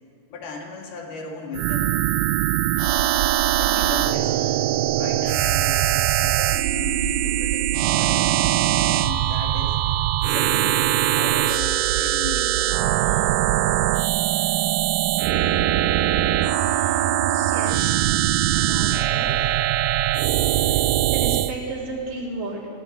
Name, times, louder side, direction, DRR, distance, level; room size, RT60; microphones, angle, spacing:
voice 1, 0.3-2.0 3.6-4.4 5.0-7.7 8.0-8.5 8.9-9.8 10.3-10.9 11.1-12.8, left 5 dB, 75° left, 0 dB, 4.2 m, -36 dB
sound 1, 1.5-21.5, right 13 dB, 80° right, 2.0 m, -21 dB
voice 2, 17.0-18.0 18.5-19.4 20.7-20.8 21.1-22.7, right 2 dB, 60° right, -3 dB, 5.0 m, -33 dB
21.5 x 16.5 x 8.0 m, 2.5 s
omnidirectional pair, 4.5 m